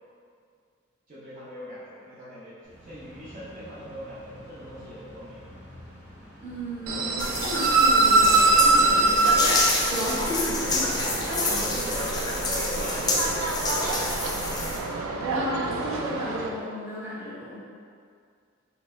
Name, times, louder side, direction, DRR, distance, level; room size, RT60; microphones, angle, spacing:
voice 1, 1.1-5.5 10.6-11.0 11.4-14.4, left 1 dB, 40° right, -11 dB, 0.6 m, -40 dB
sound 1, 2.6-9.4, left 1 dB, 60° left, 0.9 m, -48 dB
voice 2, 6.4-9.5 9.8-11.8 15.2-17.6, equal, 15° right, -10 dB, 0.9 m, -34 dB
sound 2, 6.9-16.5, right 3 dB, 90° right, 0.3 m, -24 dB
sound 3, 7.2-14.8, left 2 dB, 20° left, 0.3 m, -28 dB
3.1 x 3.0 x 2.2 m, 2.2 s
head